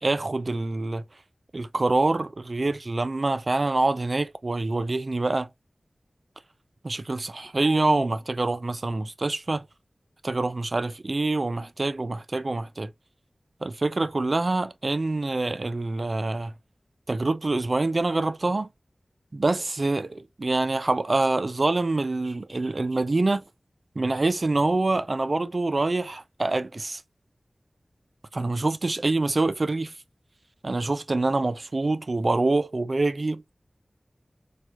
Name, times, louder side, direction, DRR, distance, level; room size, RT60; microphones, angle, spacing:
voice 1, 0.0-1.0 1.5-5.5 6.8-9.7 10.2-12.9 13.6-16.5 17.1-18.7 19.3-23.4 24.0-27.0 28.3-29.9 30.6-33.4, right 2 dB, 60° right, 0.4 m, -25 dB
4.3 x 2.3 x 2.3 m
cardioid pair, 40°, 0 cm